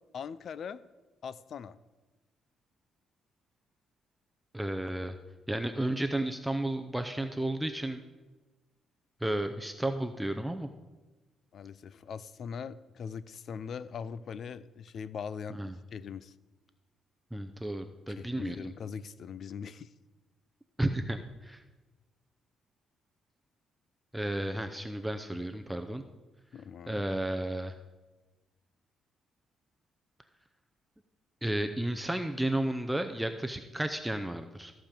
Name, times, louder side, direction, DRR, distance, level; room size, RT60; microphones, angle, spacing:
voice 1, 0.1-0.8 1.2-1.8 11.5-16.3 18.1-19.9 26.5-27.1, left 6 dB, 60° left, 17 dB, 0.5 m, -41 dB
voice 2, 4.5-5.1 5.5-8.0 9.2-10.7 15.5-15.8 17.3-18.7 20.8-21.6 24.1-26.0 26.9-27.7 31.4-34.7, right 1 dB, 5° right, 7 dB, 0.6 m, -33 dB
14.0 x 5.1 x 7.4 m, 1.2 s
cardioid pair, 90°, 0 cm